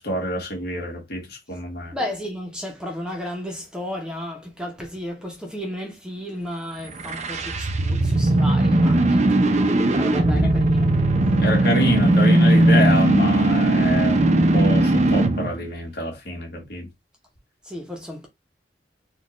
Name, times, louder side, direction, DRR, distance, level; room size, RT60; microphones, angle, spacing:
voice 1, 0.0-1.9 10.3-10.5 11.4-16.9, left 1 dB, 60° left, 1.5 m, -26 dB
voice 2, 1.9-10.9 17.6-18.3, left 1 dB, 5° right, 0.8 m, -33 dB
sound 1, 6.9-15.5, right 1 dB, 40° right, 0.5 m, -18 dB
4.2 x 2.4 x 3.0 m
head